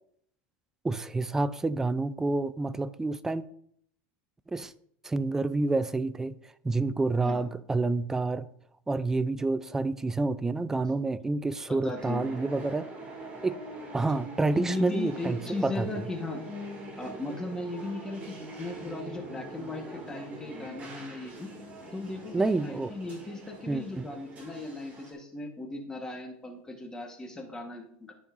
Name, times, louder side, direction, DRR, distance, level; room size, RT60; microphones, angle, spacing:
voice 1, 0.8-3.4 4.5-4.7 5.0-6.4 6.6-8.5 8.9-12.9 13.4-13.6 13.9-15.9 22.3-22.9 23.7-24.1, right 3 dB, 10° right, 0.3 m, -28 dB
voice 2, 11.7-12.2 14.5-16.4 17.0-21.5 21.9-28.1, left 2 dB, 10° left, 1.2 m, -37 dB
sound 1, 11.9-25.1, right 1 dB, 25° right, 2.2 m, -43 dB
13.0 x 5.3 x 2.5 m
supercardioid pair, 145°, 6 cm